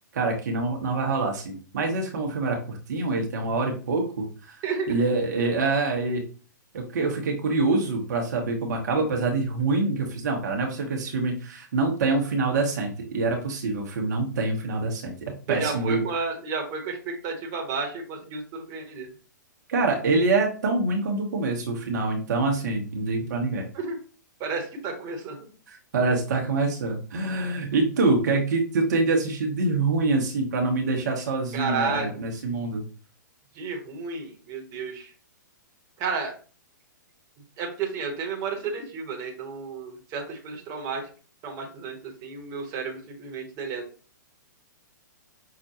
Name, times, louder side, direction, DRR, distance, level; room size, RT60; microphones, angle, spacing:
voice 1, 0.1-4.6 4.9-6.2 6.7-16.0 19.7-23.7 25.7-32.8, right 3 dB, 60° right, 1 dB, 1.0 m, -25 dB
voice 2, 4.6-5.0 15.5-19.1 23.7-24.0 24.4-25.4 31.5-32.1 33.5-35.1 36.0-36.3 37.6-41.0 41.4-43.8, right 4 dB, 35° right, 1 dB, 1.1 m, -32 dB
5.9 x 2.2 x 2.8 m, 0.38 s
figure-of-eight pair, 120°, 10 cm